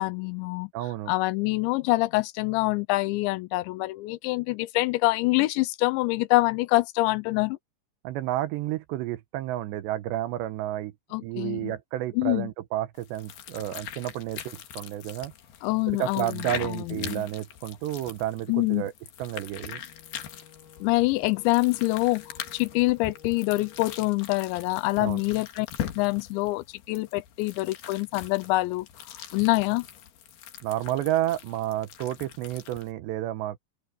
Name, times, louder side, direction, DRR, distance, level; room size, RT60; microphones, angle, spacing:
voice 1, 0.0-0.7 1.1-7.6 11.1-11.7 12.1-12.5 15.6-17.3 18.5-18.8 20.8-28.9 29.1-29.9, left 21 dB, 80° left, 2.8 m, -26 dB
voice 2, 0.7-1.1 8.0-10.9 11.2-15.3 15.9-18.9 19.2-19.8 25.0-25.2 30.6-33.6, right 14 dB, 80° right, 3.0 m, -31 dB
sound 1, 13.0-32.9, left 10 dB, 65° left, 3.3 m, -42 dB
Wind instrument woodwind instrument, 19.7-24.2, left 8 dB, 60° right, 8.4 m, -53 dB
open air
omnidirectional pair, 5.3 m